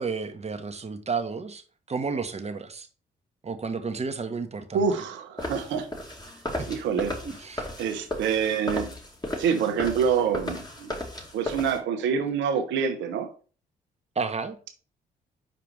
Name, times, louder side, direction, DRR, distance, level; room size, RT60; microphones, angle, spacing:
voice 1, 0.0-1.6 1.9-2.9 3.4-5.0 7.2-7.7 14.1-14.6, right 4 dB, 35° right, 1.2 m, -31 dB
voice 2, 4.7-5.9 6.7-7.2 7.8-9.0 9.4-11.0 11.3-13.3, right 6 dB, 75° right, 1.1 m, -26 dB
sound 1, 5.4-11.8, left 1 dB, 20° left, 2.4 m, -35 dB
5.2 x 4.9 x 4.7 m
hypercardioid pair, 50°, 20 cm